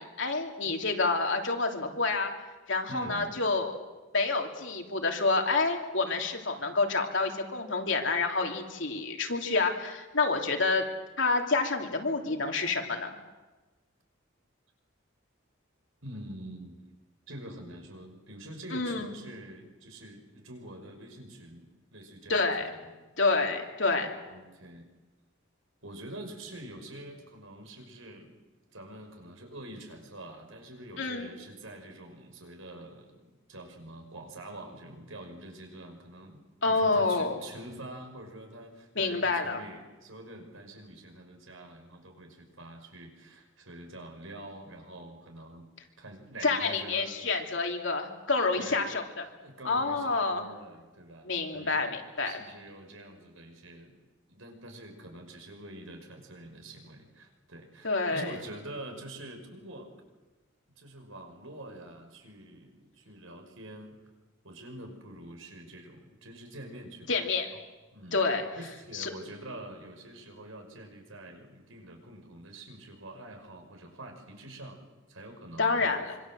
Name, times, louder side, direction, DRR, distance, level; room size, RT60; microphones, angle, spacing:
voice 1, 0.0-2.3 2.7-3.8 4.1-10.8 11.2-13.1 18.7-19.1 22.3-22.6 23.2-24.1 31.0-31.3 36.6-37.4 38.9-39.6 46.4-49.0 49.6-50.5 51.2-52.4 57.8-58.3 67.1-67.5 68.1-68.4 68.9-69.1 75.6-76.1, left 3 dB, 60° left, 3 dB, 3.2 m, -28 dB
voice 2, 2.9-3.3 16.0-16.8 17.3-22.9 24.3-24.9 25.8-28.4 28.7-45.7 46.0-47.1 48.6-48.9 49.4-51.9 52.2-54.0 54.3-59.9 60.8-64.0 64.4-67.3 67.9-74.8 75.1-76.0, right 1 dB, 75° right, 4 dB, 5.8 m, -46 dB
26.0 x 25.0 x 7.8 m, 1.2 s
head